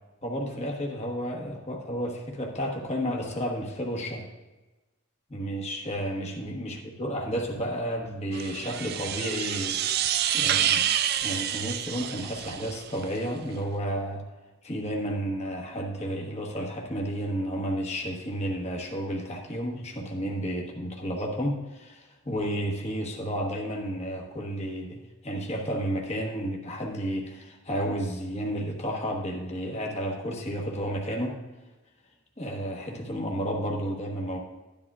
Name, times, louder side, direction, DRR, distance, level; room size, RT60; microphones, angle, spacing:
voice 1, 0.2-4.3 5.3-9.8 10.3-10.9 11.2-14.2 14.6-31.4 32.4-34.4, equal, 30° left, 0 dB, 1.1 m, -32 dB
sound 1, 8.3-13.1, right 10 dB, 45° right, 0.3 m, -28 dB
13.5 x 10.5 x 2.4 m, 1.2 s
head